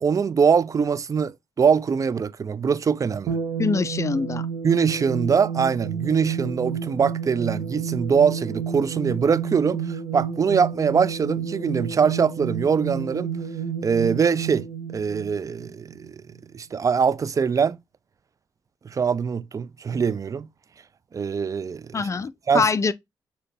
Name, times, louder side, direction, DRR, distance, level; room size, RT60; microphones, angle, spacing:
voice 1, 0.0-3.4 4.6-13.3 13.8-14.7 14.9-16.2 16.5-17.8 18.8-20.5 21.1-22.0 22.5-22.6, right 6 dB, 35° right, 0.4 m, -23 dB
sound 1, 3.3-16.1, right 7 dB, 80° right, 0.8 m, -31 dB
voice 2, 3.6-4.4 21.9-22.9, left 4 dB, 35° left, 0.5 m, -24 dB
6.4 x 2.2 x 2.6 m
supercardioid pair, 55°, 9 cm